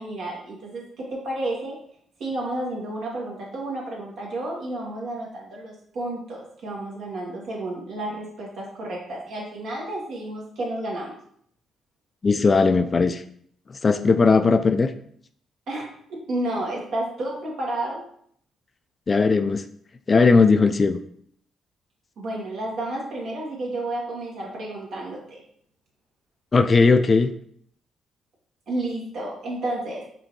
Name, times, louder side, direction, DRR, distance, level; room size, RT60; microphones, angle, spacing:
voice 1, 0.0-1.8 2.2-11.1 15.7-18.0 22.2-25.4 28.7-30.0, right 1 dB, 70° right, -2 dB, 1.5 m, -31 dB
voice 2, 12.2-13.2 13.8-14.9 19.1-19.6 20.1-21.0 26.5-27.3, left 4 dB, 35° left, 9 dB, 0.3 m, -18 dB
5.0 x 2.7 x 3.1 m, 0.65 s
cardioid pair, 90°, 0 cm